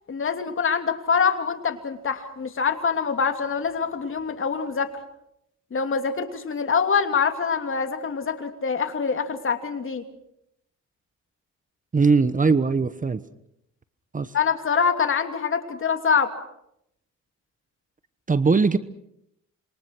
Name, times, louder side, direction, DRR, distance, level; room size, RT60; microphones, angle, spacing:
voice 1, 0.1-4.9 5.7-10.0 14.3-16.3, left 6 dB, 45° left, 6 dB, 2.9 m, -25 dB
voice 2, 11.9-13.2 14.1-14.3 18.3-18.8, right 4 dB, 25° right, 13 dB, 1.2 m, -20 dB
27.5 x 23.0 x 6.2 m, 0.78 s
cardioid pair, 90°, 30 cm